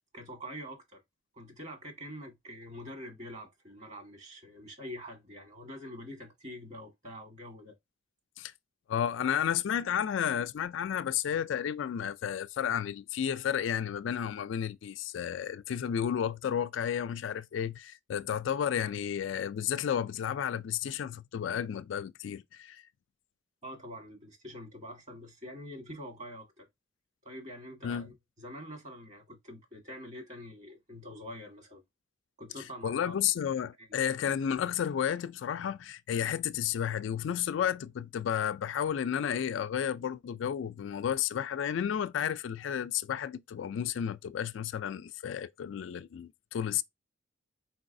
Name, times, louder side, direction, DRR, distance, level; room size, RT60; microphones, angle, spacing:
voice 1, 0.1-1.0 1.3-7.7 23.6-26.7 27.2-31.8 32.4-33.1 33.8-33.9, equal, 40° right, 1.6 m, -45 dB
voice 2, 8.9-22.8 27.8-28.1 32.8-46.8, left 9 dB, 70° left, 0.3 m, -32 dB
4.6 x 3.9 x 2.6 m
head